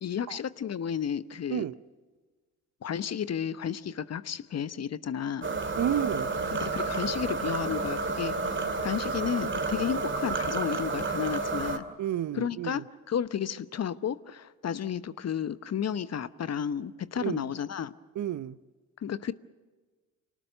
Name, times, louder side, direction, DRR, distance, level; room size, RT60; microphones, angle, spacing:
voice 1, 0.0-1.6 2.8-5.5 6.5-11.9 12.3-17.9 19.0-19.3, left 8 dB, 35° left, 1.0 m, -32 dB
sound 1, 5.4-11.8, right 3 dB, 25° right, 2.4 m, -30 dB
voice 2, 5.8-6.7 12.0-12.8 17.2-17.5 18.2-18.6, right 11 dB, 45° right, 0.8 m, -31 dB
28.5 x 19.0 x 6.7 m
hypercardioid pair, 50°, 43 cm